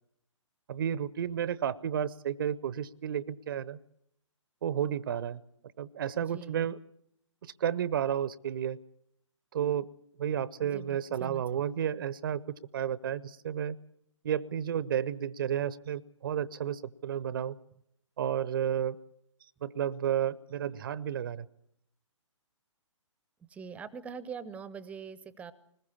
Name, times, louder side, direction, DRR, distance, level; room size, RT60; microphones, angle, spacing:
voice 1, 0.7-3.8 4.6-5.4 5.8-6.8 7.4-8.8 9.5-9.9 10.2-12.4 12.7-13.8 14.2-17.6 18.2-19.0 19.6-21.5, right 9 dB, 45° right, 20 dB, 0.7 m, -32 dB
voice 2, 6.2-6.7 10.6-11.4 23.5-25.5, right 6 dB, 10° right, 17 dB, 0.7 m, -43 dB
21.0 x 20.5 x 7.1 m, 0.74 s
figure-of-eight pair, 125°, 16 cm